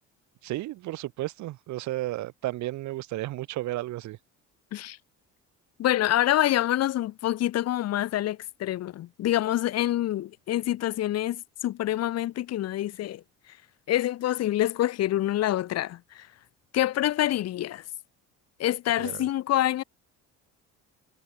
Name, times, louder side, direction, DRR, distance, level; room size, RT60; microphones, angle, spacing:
voice 1, 0.4-4.2 19.0-19.2, right 16 dB, 65° right, 3.4 m, -33 dB
voice 2, 5.8-13.2 13.9-16.3 16.7-17.8 18.6-19.8, left 13 dB, 55° left, 5.1 m, -26 dB
cardioid pair, 165°, 30 cm